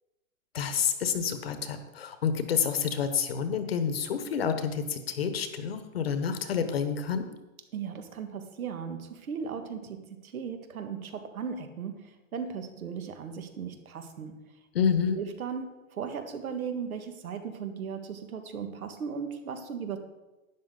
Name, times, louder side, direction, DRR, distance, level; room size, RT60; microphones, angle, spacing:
voice 1, 0.5-7.2 14.7-15.2, left 7 dB, 45° left, 9 dB, 1.1 m, -28 dB
voice 2, 7.7-14.4 15.2-20.0, right 6 dB, 85° right, 7 dB, 1.7 m, -37 dB
12.0 x 10.0 x 3.8 m, 1.1 s
hypercardioid pair, 180°, 42 cm